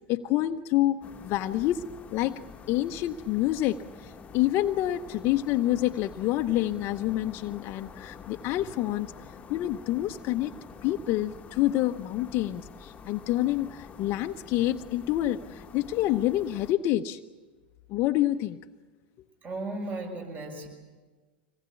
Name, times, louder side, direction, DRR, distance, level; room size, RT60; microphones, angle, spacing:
voice 1, 0.1-1.8 2.1-2.4 2.7-9.1 9.5-10.5 10.8-17.2 17.9-18.6, left 14 dB, 45° left, 7 dB, 0.8 m, -27 dB
sound 1, 1.0-16.7, left 5 dB, 25° left, 1.3 m, -47 dB
voice 2, 19.4-20.7, right 2 dB, 30° right, 4 dB, 6.4 m, -35 dB
25.5 x 19.0 x 8.4 m, 1.4 s
hypercardioid pair, 95°, 6 cm